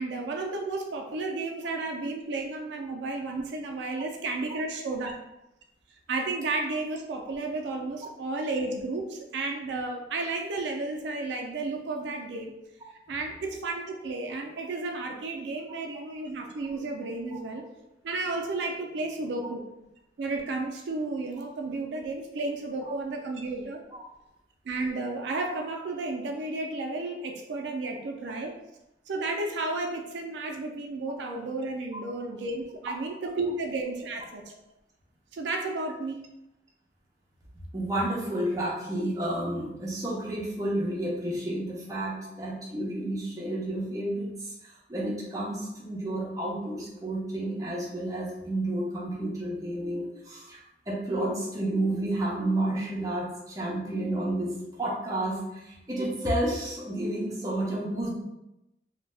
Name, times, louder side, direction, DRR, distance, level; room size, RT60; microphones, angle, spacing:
voice 1, 0.0-5.1 6.1-12.5 13.1-17.6 18.0-19.7 20.2-23.8 24.7-28.5 29.1-34.5 35.3-36.2, right 3 dB, 80° right, 2 dB, 0.4 m, -32 dB
voice 2, 37.7-58.1, right 1 dB, 20° right, -4 dB, 0.6 m, -31 dB
2.6 x 2.2 x 3.2 m, 0.90 s
head